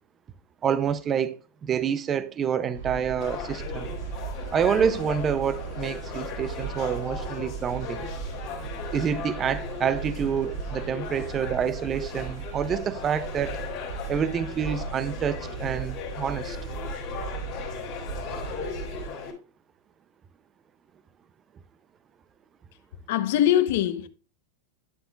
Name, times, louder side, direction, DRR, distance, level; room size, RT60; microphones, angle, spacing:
voice 1, 0.6-1.4 1.6-3.9 4.5-8.1 8.9-13.6 14.1-16.6, right 7 dB, 20° right, 0.4 m, -27 dB
sound 1, 2.7-19.1, right 5 dB, 70° right, 2.6 m, -37 dB
sound 2, 3.2-19.3, left 6 dB, 30° left, 3.5 m, -38 dB
voice 2, 23.1-24.1, left 11 dB, 60° left, 0.9 m, -22 dB
11.0 x 7.6 x 2.3 m
supercardioid pair, 155°, 0 cm